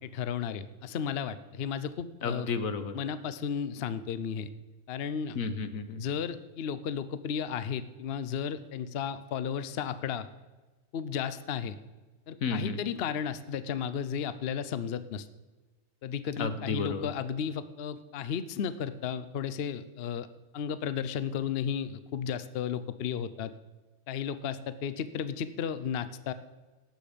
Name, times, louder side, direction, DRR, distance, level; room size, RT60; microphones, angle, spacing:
voice 1, 0.0-2.5 2.9-4.5 4.9-5.4 6.0-10.3 10.9-11.8 12.3-15.3 16.0-20.3 20.5-23.5 24.1-26.3, left 7 dB, 55° left, 13 dB, 0.8 m, -34 dB
voice 2, 2.2-2.9 5.3-6.0 12.4-12.8 16.4-17.1, left 5 dB, 80° left, 10 dB, 1.4 m, -32 dB
18.0 x 7.9 x 5.1 m, 1.2 s
omnidirectional pair, 1.4 m